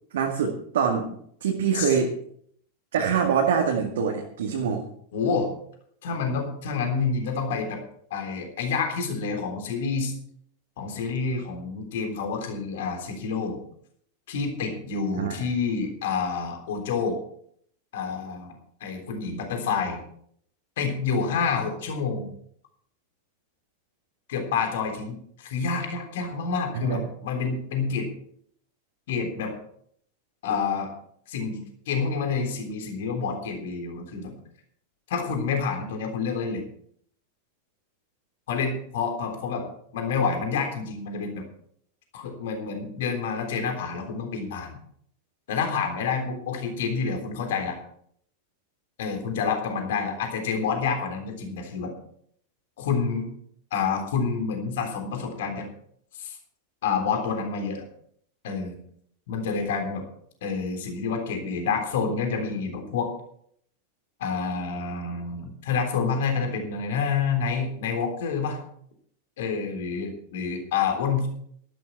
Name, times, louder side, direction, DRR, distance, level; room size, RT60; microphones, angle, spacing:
voice 1, 0.1-1.1 1.4-2.1 2.9-4.8 15.1-15.5 26.7-27.0, right 6 dB, 60° right, 1 dB, 2.0 m, -24 dB
voice 2, 5.1-5.5 6.0-7.8 8.1-10.1 10.8-13.6 14.3-17.2 17.9-18.5 18.8-20.0 20.8-22.3 24.3-28.1 29.1-29.5 30.4-30.9 31.3-34.3 35.1-36.6 38.5-39.7 39.9-41.4 42.1-44.8 45.5-47.8 49.0-51.9 52.8-53.3 53.7-55.7 56.1-56.4 56.8-57.8 58.4-58.8 59.3-60.0 60.4-63.1 64.2-68.6 69.4-71.3, left 5 dB, 55° left, 4 dB, 3.5 m, -28 dB
13.5 x 12.0 x 4.7 m, 0.66 s
figure-of-eight pair, 90°, 0 cm